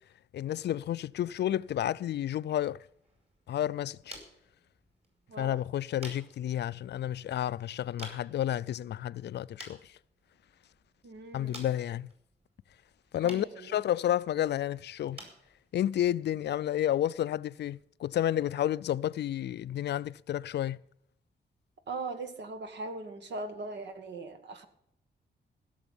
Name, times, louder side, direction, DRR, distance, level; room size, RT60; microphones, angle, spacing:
voice 1, 0.3-2.8 3.5-4.2 5.4-9.9 11.3-12.1 13.1-15.2 15.7-20.8, left 11 dB, 70° left, 0.4 m, -31 dB
sound 1, 2.9-17.9, right 2 dB, 35° right, 4.6 m, -54 dB
voice 2, 5.3-5.6 11.0-11.6 13.2-13.8 21.9-24.7, right 3 dB, 75° right, 1.6 m, -40 dB
16.0 x 7.1 x 7.2 m
wide cardioid pair, 135°, 18 cm